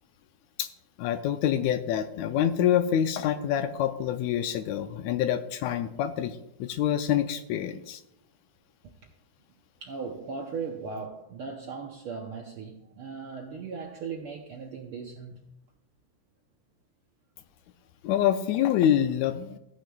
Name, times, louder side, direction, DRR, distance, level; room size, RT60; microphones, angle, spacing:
voice 1, 1.0-8.0 18.0-19.6, left 10 dB, 80° left, 1.8 m, -26 dB
voice 2, 9.8-15.4, right 5 dB, 70° right, 1.3 m, -38 dB
15.0 x 9.3 x 2.3 m
omnidirectional pair, 3.4 m